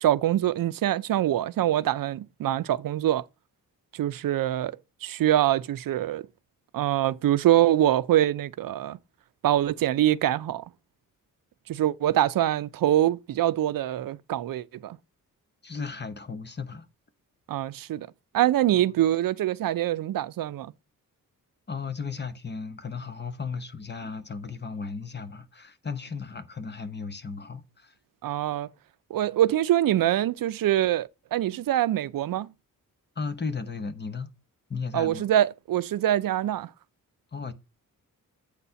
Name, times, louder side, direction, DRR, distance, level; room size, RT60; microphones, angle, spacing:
voice 1, 0.0-3.2 3.9-4.7 5.0-6.3 6.7-9.0 9.4-10.6 11.7-15.0 17.5-18.1 18.3-20.7 28.2-28.7 29.1-32.5 34.9-36.7, right 12 dB, 75° right, 0.5 m, -24 dB
voice 2, 15.6-16.9 18.7-18.8 21.7-27.9 33.2-34.3 34.7-35.3 37.3-37.5, left 5 dB, 30° left, 0.9 m, -35 dB
8.2 x 4.1 x 5.6 m
wide cardioid pair, 135°, 34 cm